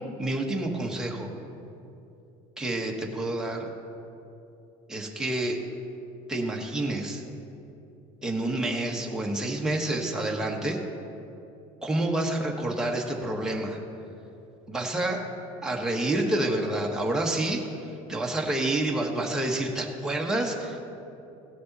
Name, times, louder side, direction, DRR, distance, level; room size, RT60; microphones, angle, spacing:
voice 1, 0.2-1.3 2.6-3.7 4.9-5.6 6.3-7.2 8.2-10.8 11.8-13.8 14.7-15.2 15.6-17.6 18.1-20.8, right 1 dB, 5° right, -1 dB, 1.2 m, -28 dB
17.0 x 6.5 x 4.1 m, 2.8 s
cardioid pair, 140°, 15 cm